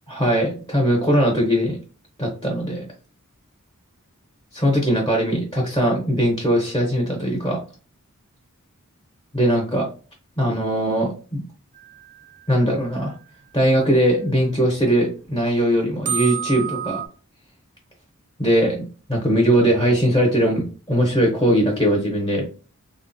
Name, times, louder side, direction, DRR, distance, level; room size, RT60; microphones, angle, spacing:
voice 1, 0.1-1.8 2.2-2.9 4.5-7.6 9.3-9.9 10.4-11.4 12.5-13.1 13.5-17.0 18.4-22.4, equal, 15° left, -1 dB, 0.8 m, -20 dB
sound 1, 11.8-13.4 14.3-14.4 14.9-15.0 15.1-15.2 16.1-17.1, right 9 dB, 35° right, 0.4 m, -31 dB
3.4 x 2.1 x 2.6 m, 0.36 s
head